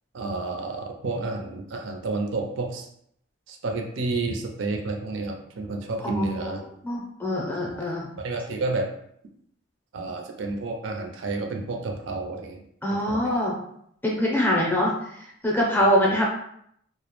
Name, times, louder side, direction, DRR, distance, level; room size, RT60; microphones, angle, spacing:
voice 1, 0.1-2.9 3.5-6.6 7.6-8.9 9.9-12.6 13.1-13.5 15.8-16.1, right 3 dB, 75° right, 3 dB, 0.4 m, -31 dB
voice 2, 6.0-6.5 6.8-8.1 12.8-13.5 14.0-16.3, equal, 10° left, -3 dB, 0.5 m, -24 dB
2.3 x 2.0 x 2.9 m, 0.69 s
head